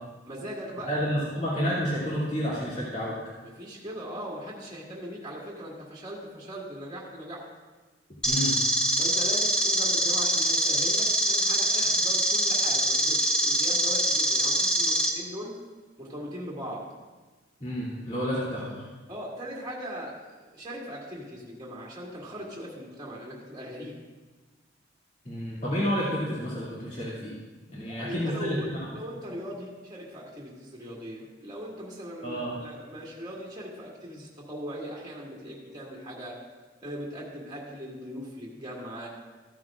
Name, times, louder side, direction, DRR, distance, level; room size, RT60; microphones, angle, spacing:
voice 1, 0.3-1.0 3.4-7.4 9.0-15.6 16.0-16.8 19.1-24.0 27.8-36.4 36.8-39.1, equal, 20° right, -5 dB, 1.8 m, -39 dB
voice 2, 0.9-3.1 8.2-8.6 17.6-18.9 25.2-27.3 27.7-28.8 32.2-32.6, equal, 40° left, -9 dB, 2.5 m, -30 dB
sound 1, 8.2-15.1, equal, 5° left, 0.8 m, -24 dB
14.5 x 9.4 x 2.5 m, 1.3 s
head